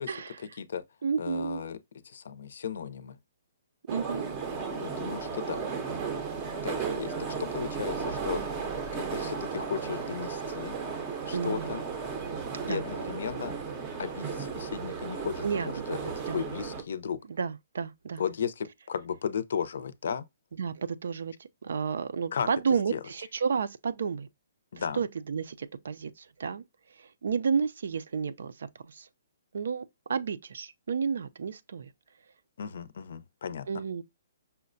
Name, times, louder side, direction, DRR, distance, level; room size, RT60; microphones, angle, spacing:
voice 1, 0.1-0.4 1.0-1.6 3.9-4.4 11.3-11.7 12.6-12.8 15.4-15.7 16.2-16.4 17.3-18.2 20.5-24.3 24.8-26.6 27.0-29.1 29.5-31.9 33.7-34.0, right 6 dB, 70° right, 0.4 m, -31 dB
voice 2, 1.2-1.8 2.0-3.2 4.8-5.6 6.6-7.1 7.4-8.4 8.9-10.7 11.3-11.8 12.7-13.5 14.0-16.0 16.3-17.2 18.2-20.2 22.3-22.5 22.9-23.0 24.7-25.0 32.6-33.7, left 7 dB, 60° left, 0.5 m, -35 dB
sound 1, 3.9-16.8, right 5 dB, 20° right, 0.6 m, -35 dB
5.6 x 2.1 x 2.5 m
hypercardioid pair, 170°, 0 cm